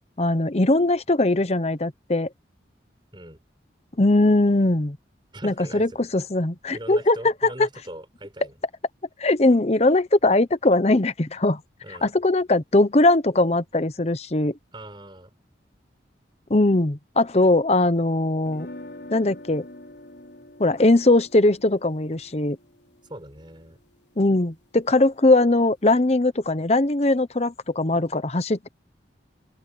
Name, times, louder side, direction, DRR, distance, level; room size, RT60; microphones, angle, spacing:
voice 1, 0.2-2.3 4.0-5.0 5.4-7.2 7.6-7.7 9.2-11.6 11.9-14.5 16.5-18.7 19.1-19.7 20.6-22.6 24.2-28.7, left 2 dB, 35° left, 0.9 m, -20 dB
voice 2, 5.3-6.1 6.7-8.6 11.8-12.1 14.7-15.3 23.1-23.8, right 1 dB, 25° right, 5.5 m, -40 dB
sound 1, 18.4-24.4, left 1 dB, 70° left, 3.9 m, -45 dB
head